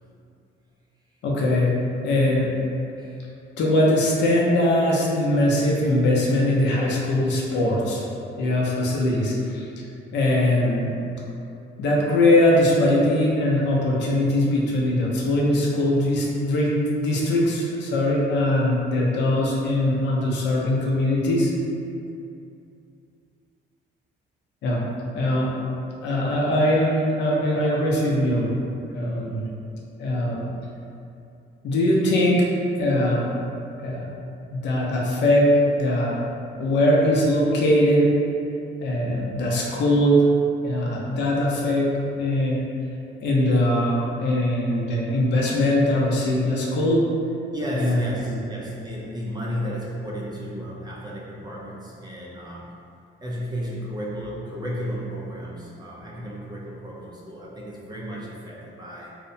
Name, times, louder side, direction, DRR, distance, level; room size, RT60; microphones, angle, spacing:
voice 1, 1.2-1.7 2.0-2.5 3.6-8.0 8.4-9.8 10.1-10.9 11.8-21.5 24.6-24.8 25.1-25.5 26.0-28.5 28.9-29.5 30.0-30.4 31.6-33.3 33.8-34.1 34.5-35.5 35.7-36.2 36.6-38.1 38.8-40.2 40.6-42.6 43.2-47.0 47.7-48.0 48.3-48.4, left 1 dB, 65° left, -4 dB, 0.5 m, -21 dB
voice 2, 3.0-3.3 47.5-52.8 53.2-59.1, equal, 20° right, -5 dB, 0.3 m, -33 dB
2.7 x 2.1 x 2.6 m, 2.6 s
cardioid pair, 135°, 20 cm